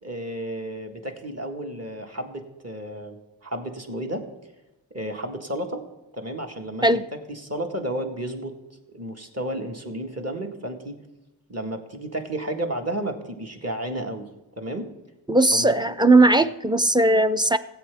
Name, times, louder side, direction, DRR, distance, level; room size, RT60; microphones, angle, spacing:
voice 1, 0.0-4.3 4.9-5.9 6.1-6.9 7.3-8.5 8.9-11.0 11.5-14.3 14.6-14.9 15.5-15.9, right 1 dB, 30° right, 2 dB, 1.6 m, -32 dB
voice 2, 15.3-17.6, right 2 dB, 10° right, 11 dB, 0.4 m, -18 dB
17.5 x 8.4 x 3.5 m, 1.0 s
wide cardioid pair, 65°, 47 cm